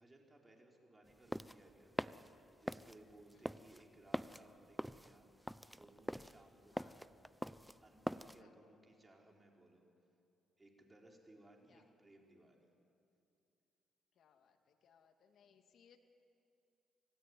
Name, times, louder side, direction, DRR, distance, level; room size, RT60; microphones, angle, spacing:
voice 1, 0.0-7.2 7.8-9.9 10.6-12.7, right 1 dB, 20° right, 1 dB, 4.3 m, -63 dB
sound 1, 1.1-8.4, equal, ahead, 0.5 m, -44 dB
voice 2, 14.2-14.6 14.8-16.0, left 8 dB, 65° left, 5 dB, 1.9 m, -68 dB
26.0 x 16.0 x 9.8 m, 2.6 s
cardioid pair, 90°, 0 cm